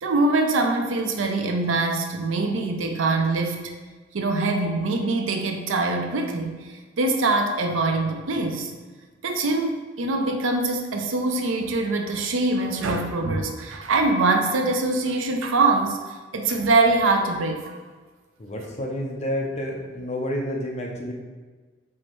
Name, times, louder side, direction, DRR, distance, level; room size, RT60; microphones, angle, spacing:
voice 1, 0.0-3.7 4.1-8.7 9.2-16.0 16.3-17.8, right 3 dB, 85° right, 4 dB, 0.5 m, -23 dB
voice 2, 18.4-21.1, left 1 dB, 35° left, 0 dB, 0.6 m, -29 dB
4.6 x 3.1 x 3.0 m, 1.4 s
head